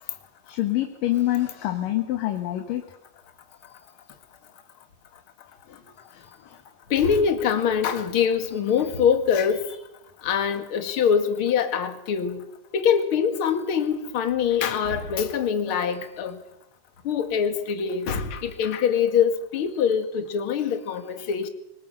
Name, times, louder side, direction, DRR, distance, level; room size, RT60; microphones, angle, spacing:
voice 1, 0.5-2.8 5.7-5.8 6.1-6.6 19.7-19.8, left 14 dB, 65° left, 5 dB, 2.9 m, -27 dB
voice 2, 6.9-9.6 10.2-12.4 12.7-16.4 17.0-21.5, left 7 dB, 40° left, 7 dB, 2.2 m, -24 dB
24.5 x 21.0 x 6.6 m, 0.84 s
omnidirectional pair, 4.4 m